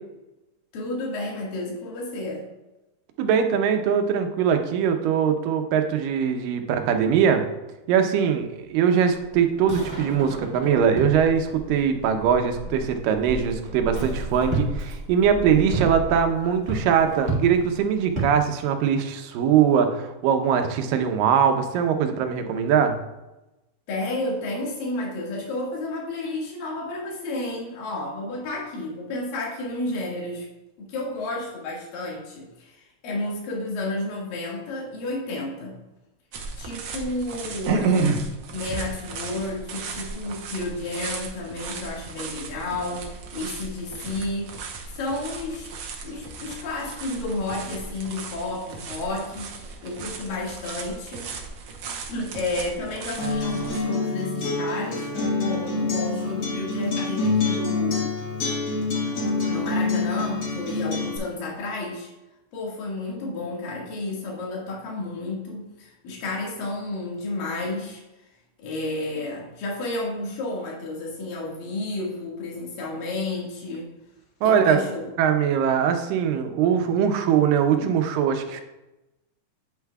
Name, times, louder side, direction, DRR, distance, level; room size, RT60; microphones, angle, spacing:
voice 1, 0.7-2.5 13.9-14.0 23.9-30.5 30.8-35.8 36.6-38.1 38.5-44.6 44.9-45.7 46.0-51.3 51.8-55.1 55.4-58.1 59.5-62.1 62.5-68.2 68.6-73.9 74.4-75.0 76.7-76.8 77.8-78.0, left 2 dB, 80° left, -3 dB, 3.5 m, -31 dB
voice 2, 3.2-7.4 7.9-23.0 74.4-74.8 75.2-78.6, right 7 dB, 85° right, 6 dB, 2.5 m, -21 dB
sound 1, 9.1-18.4, right 2 dB, 30° right, 1.7 m, -32 dB
sound 2, 36.3-53.8, right 4 dB, 70° right, 1.4 m, -33 dB
Acoustic guitar, 53.2-61.2, left 3 dB, 50° left, 2.7 m, -26 dB
8.8 x 8.2 x 2.3 m, 0.99 s
omnidirectional pair, 3.9 m